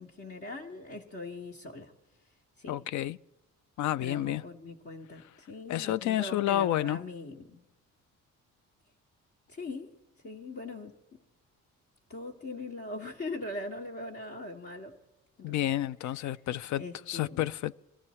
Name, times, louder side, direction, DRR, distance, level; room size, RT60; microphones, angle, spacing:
voice 1, 0.0-1.9 2.6-2.8 4.0-7.6 9.5-10.0 10.2-11.0 12.1-15.0 15.4-15.7 16.7-17.5, left 2 dB, 50° left, 1.5 m, -41 dB
voice 2, 2.7-3.2 3.8-4.4 5.7-7.0 15.4-17.9, left 13 dB, 70° left, 0.4 m, -30 dB
22.5 x 14.0 x 4.3 m
cardioid pair, 90°, 30 cm